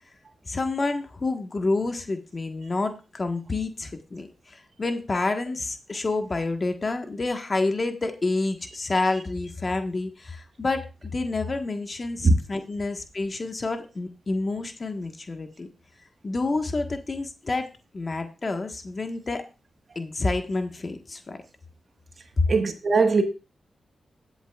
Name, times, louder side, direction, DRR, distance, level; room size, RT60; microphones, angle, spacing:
voice 1, 0.5-15.7 16.2-17.7 17.9-19.4 19.9-21.4 22.4-22.5, left 3 dB, 45° left, 1.4 m, -28 dB
voice 2, 22.5-23.2, right 3 dB, 55° right, 1.5 m, -19 dB
17.5 x 8.0 x 2.4 m
cardioid pair, 55°, 0 cm